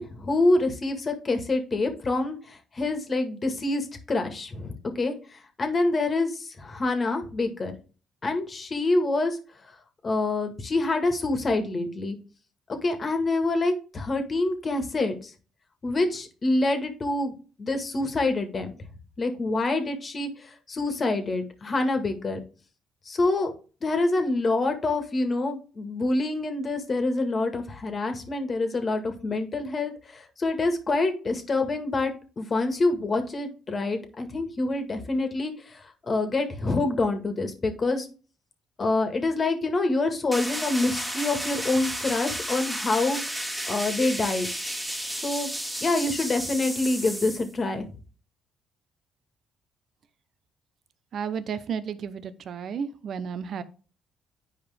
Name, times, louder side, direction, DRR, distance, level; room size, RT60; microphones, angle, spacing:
voice 1, 0.0-7.7 8.2-9.4 10.0-12.2 12.7-15.3 15.8-18.7 19.2-22.4 23.1-23.5 23.8-38.1 38.8-44.5 45.2-45.5 45.8-47.9, left 2 dB, 40° left, 6 dB, 1.7 m, -26 dB
sound 1, 40.3-47.5, equal, 5° right, 1.8 m, -32 dB
voice 2, 51.1-53.6, right 7 dB, 60° right, 13 dB, 0.7 m, -32 dB
9.4 x 4.9 x 3.5 m, 0.37 s
supercardioid pair, 70°, 0 cm